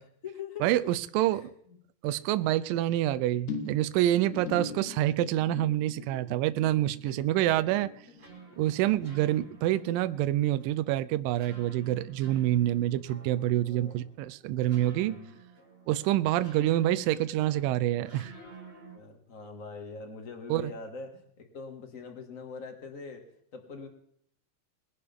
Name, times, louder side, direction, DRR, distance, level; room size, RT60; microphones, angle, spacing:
voice 1, 0.0-0.6 1.3-1.8 4.3-5.3 6.0-6.2 7.0-8.2 8.8-9.1 12.7-12.8 13.6-14.0 14.9-15.4 18.9-23.3 23.5-23.9, left 4 dB, 35° left, 1.2 m, -44 dB
voice 2, 0.6-1.5 2.0-7.9 8.6-15.2 15.9-18.3 20.5-20.7, right 14 dB, 85° right, 2.0 m, -27 dB
sound 1, 3.5-10.1 10.3-10.8 11.1-11.2, left 4 dB, 80° left, 3.4 m, -43 dB
sound 2, 7.8-19.0, right 4 dB, 20° right, 1.6 m, -52 dB
21.5 x 11.0 x 3.6 m
omnidirectional pair, 4.7 m